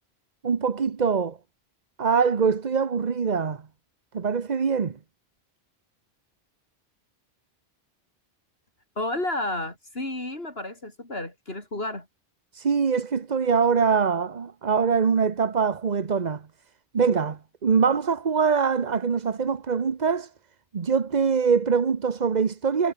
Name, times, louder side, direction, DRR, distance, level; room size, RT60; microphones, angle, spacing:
voice 1, 0.4-1.4 2.0-3.6 4.1-5.0 12.5-16.4 16.9-20.3 20.7-22.9, right 6 dB, 45° right, 1.1 m, -23 dB
voice 2, 9.0-12.1, left 1 dB, 65° left, 5.4 m, -31 dB
omnidirectional pair, 1.1 m